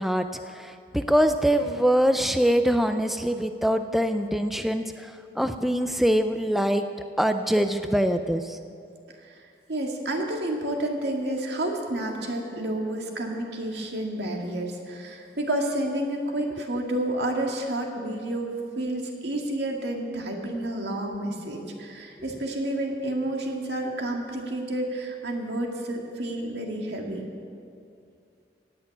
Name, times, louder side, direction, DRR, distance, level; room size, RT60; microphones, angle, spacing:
voice 1, 0.0-6.8 7.2-8.6, equal, ahead, 7 dB, 0.4 m, -24 dB
voice 2, 9.7-27.3, right 1 dB, 75° right, 1 dB, 1.9 m, -30 dB
17.5 x 6.8 x 9.1 m, 2.4 s
head